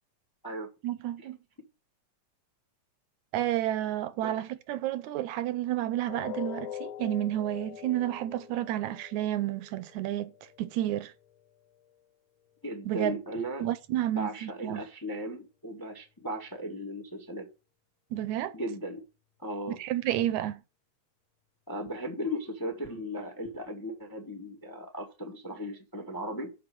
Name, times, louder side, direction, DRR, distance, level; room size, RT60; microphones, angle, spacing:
voice 1, 0.8-1.4 3.3-10.3 10.6-11.1 12.9-13.2 13.6-14.8 18.1-18.6 19.7-20.6, right 13 dB, 80° right, 2.0 m, -31 dB
sound 1, 6.1-12.1 12.5-12.6 13.1-13.2, left 10 dB, 80° left, 2.1 m, -44 dB
voice 2, 12.6-13.7 14.1-17.5 18.5-19.0 19.4-19.8 21.7-26.5, equal, 15° left, 0.8 m, -36 dB
6.8 x 6.2 x 7.7 m
omnidirectional pair, 3.4 m